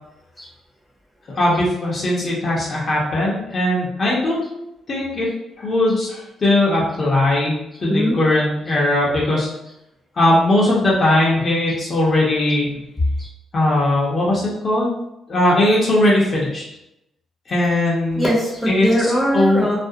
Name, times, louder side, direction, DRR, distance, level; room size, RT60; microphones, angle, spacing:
voice 1, 1.3-4.4 4.9-5.3 5.6-7.5 7.8-9.5 10.2-12.7 13.5-14.9 15.3-16.6 17.5-18.3 18.7-18.9 19.3-19.6, left 1 dB, 40° left, -5 dB, 0.7 m, -19 dB
voice 2, 18.2-19.8, equal, 5° left, -4 dB, 0.8 m, -20 dB
2.4 x 2.0 x 2.7 m, 0.86 s
cardioid pair, 90°, 0 cm